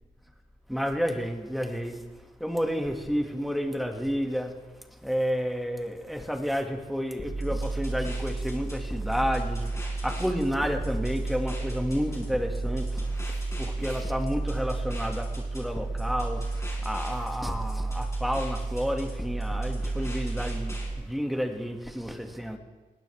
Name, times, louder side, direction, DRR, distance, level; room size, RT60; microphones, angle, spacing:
voice 1, 0.7-2.0 2.4-4.5 5.0-22.6, equal, ahead, 3 dB, 2.1 m, -31 dB
sound 1, 7.2-20.9, right 2 dB, 20° left, 5.8 m, -32 dB
19.5 x 18.0 x 3.5 m, 1.2 s
cardioid pair, 80°, 15 cm